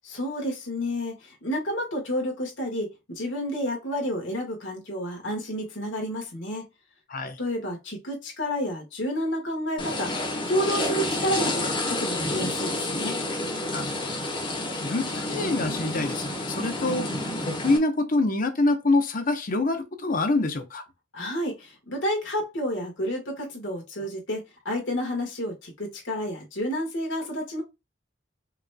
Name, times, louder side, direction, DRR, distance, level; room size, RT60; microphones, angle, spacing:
voice 1, 0.0-6.7 7.4-10.1 10.5-13.2 21.1-27.6, equal, 80° left, 1.7 m, -30 dB
sound 1, 9.8-17.8, left 2 dB, 25° left, 1.1 m, -29 dB
voice 2, 13.7-14.3 14.8-17.1 17.4-20.8, left 2 dB, 50° left, 0.8 m, -26 dB
4.8 x 3.1 x 2.2 m
head